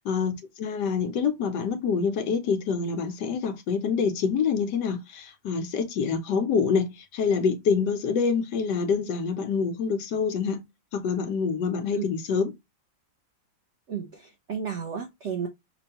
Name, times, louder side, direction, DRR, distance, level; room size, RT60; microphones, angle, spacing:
voice 1, 0.0-10.6 10.9-12.5, left 5 dB, 70° left, 1.2 m, -26 dB
voice 2, 13.9-15.5, right 7 dB, 90° right, 0.6 m, -33 dB
5.3 x 2.2 x 2.8 m
omnidirectional pair, 2.2 m